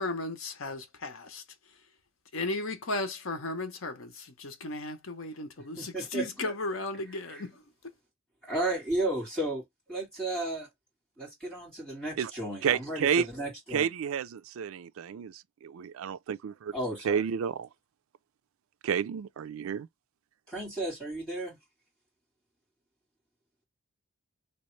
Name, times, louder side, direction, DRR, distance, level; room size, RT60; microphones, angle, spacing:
voice 1, 0.0-1.4 2.3-7.6, left 2 dB, 75° left, 0.8 m, -35 dB
voice 2, 5.8-6.5 7.3-7.4 8.4-9.6 9.9-10.7 11.2-13.8 16.7-17.2 20.5-21.6, right 1 dB, 5° left, 2.6 m, -33 dB
voice 3, 12.6-13.3 13.7-16.7 17.0-17.7 18.8-19.9, right 7 dB, 80° right, 0.4 m, -30 dB
3.4 x 2.9 x 3.1 m
head